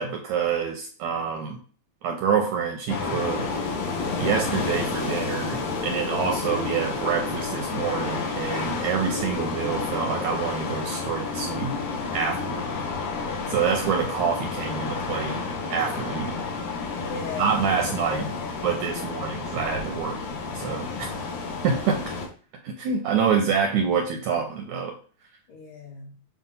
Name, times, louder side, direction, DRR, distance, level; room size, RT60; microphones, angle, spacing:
voice 1, 0.0-1.6 2.0-3.5 4.2-11.8 12.1-12.7 13.5-15.4 15.7-16.4 17.4-18.3 18.6-20.2 20.5-20.9 21.6-22.0 22.6-25.0, right 6 dB, 75° right, 3 dB, 1.8 m, -26 dB
sound 1, 2.9-22.3, left 4 dB, 80° left, 3.4 m, -30 dB
voice 2, 16.9-19.1 25.5-26.1, left 4 dB, 65° left, -2 dB, 2.9 m, -39 dB
7.2 x 2.6 x 5.4 m, 0.41 s
omnidirectional pair, 4.0 m